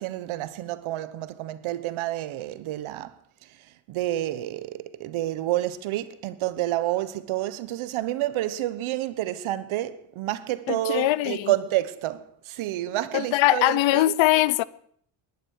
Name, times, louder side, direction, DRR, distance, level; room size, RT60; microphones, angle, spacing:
voice 1, 0.0-3.1 3.9-14.1, right 14 dB, 80° right, 1.3 m, -29 dB
voice 2, 10.7-11.5 13.1-14.6, left 16 dB, 70° left, 0.7 m, -21 dB
19.5 x 11.0 x 6.6 m
cardioid pair, 160°, 48 cm